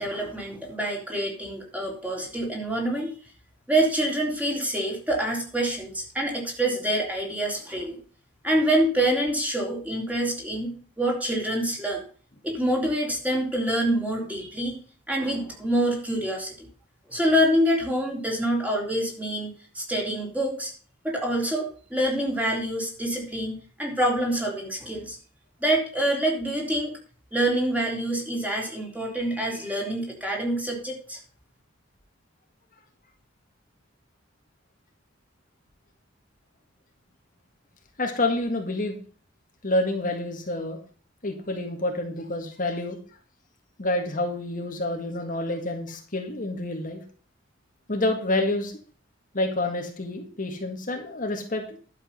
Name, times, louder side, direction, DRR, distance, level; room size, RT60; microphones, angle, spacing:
voice 1, 0.0-3.2 3.7-8.0 8.4-12.0 12.4-14.7 15.1-16.7 17.1-19.5 19.8-20.7 21.0-25.2 25.6-27.0 27.3-31.2, right 1 dB, 10° right, -1 dB, 3.6 m, -26 dB
voice 2, 38.0-39.0 39.6-40.8 41.2-43.0 43.8-47.0 47.9-48.7 49.3-51.9, left 2 dB, 45° left, 3 dB, 1.8 m, -28 dB
11.5 x 7.5 x 5.6 m, 0.41 s
head